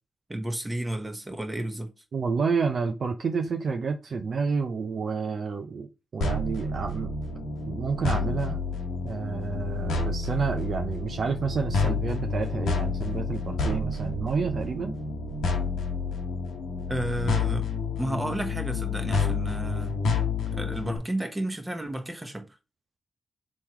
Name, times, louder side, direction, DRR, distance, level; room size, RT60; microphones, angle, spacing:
voice 1, 0.3-1.9 16.9-17.7 18.0-20.0 20.5-22.5, right 1 dB, 20° right, 1.2 m, -32 dB
voice 2, 2.1-5.9 6.1-7.1 7.7-8.6 9.0-14.9, right 5 dB, 65° right, 0.5 m, -29 dB
sound 1, 6.2-21.0, left 4 dB, 90° left, 1.0 m, -29 dB
3.6 x 3.1 x 4.4 m
supercardioid pair, 45°, 0 cm